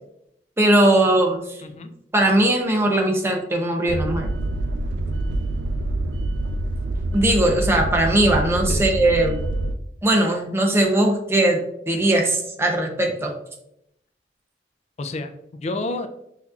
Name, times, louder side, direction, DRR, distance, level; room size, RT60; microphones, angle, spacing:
voice 1, 0.6-1.6 2.1-4.3 7.1-9.4 10.0-11.6 11.9-13.3, right 1 dB, 15° right, 1 dB, 0.6 m, -19 dB
voice 2, 1.6-1.9 8.7-8.9 15.0-16.1, left 2 dB, 40° left, 8 dB, 0.4 m, -30 dB
sound 1, 3.9-9.7, right 2 dB, 90° right, 0.4 m, -26 dB
5.8 x 2.8 x 2.4 m, 0.78 s
head